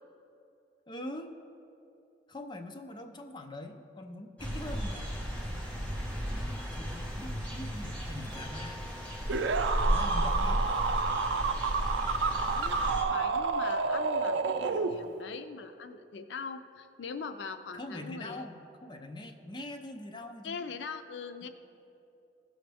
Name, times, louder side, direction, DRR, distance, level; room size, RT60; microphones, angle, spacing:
voice 1, 0.9-1.3 2.3-5.1 6.3-8.9 9.9-10.9 17.7-20.6, left 1 dB, 25° left, 3 dB, 0.6 m, -43 dB
sound 1, 4.4-13.0, equal, 10° left, 1.5 m, -34 dB
sound 2, 9.3-15.3, right 4 dB, 90° right, 0.4 m, -30 dB
voice 2, 12.3-18.4 20.4-21.5, left 5 dB, 85° left, 9 dB, 0.4 m, -42 dB
16.0 x 6.3 x 3.4 m, 2.7 s
head